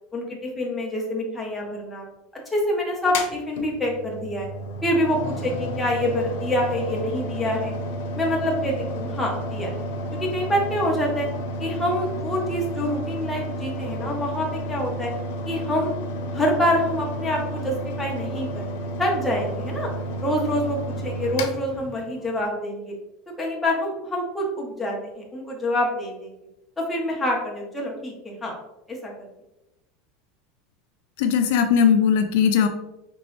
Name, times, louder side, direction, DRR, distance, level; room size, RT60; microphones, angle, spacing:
voice 1, 0.1-2.1 2.5-4.5 4.8-7.7 8.2-9.8 10.1-11.3 11.6-15.1 15.5-15.9 16.3-19.9 20.2-22.9 23.4-26.3 26.8-28.5 28.9-29.3, left 1 dB, 5° left, -3 dB, 0.8 m, -26 dB
Mechanical fan, 3.0-22.4, equal, 85° left, 0.7 m, -31 dB
voice 2, 31.2-32.7, left 7 dB, 60° left, 6 dB, 0.4 m, -19 dB
5.2 x 3.0 x 3.0 m, 0.94 s
supercardioid pair, 180°, 0 cm